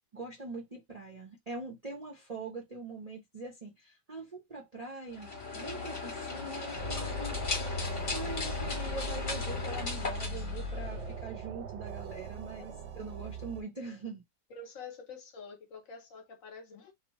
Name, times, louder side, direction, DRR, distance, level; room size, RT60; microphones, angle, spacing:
voice 1, 0.1-14.2, right 3 dB, 85° right, 0.3 m, -43 dB
sound 1, 5.1-11.3, left 3 dB, 35° left, 0.9 m, -37 dB
sound 2, 6.8-13.6, equal, 60° right, 0.7 m, -39 dB
voice 2, 14.5-16.9, left 4 dB, 60° left, 1.0 m, -47 dB
2.9 x 2.0 x 2.9 m
omnidirectional pair, 1.8 m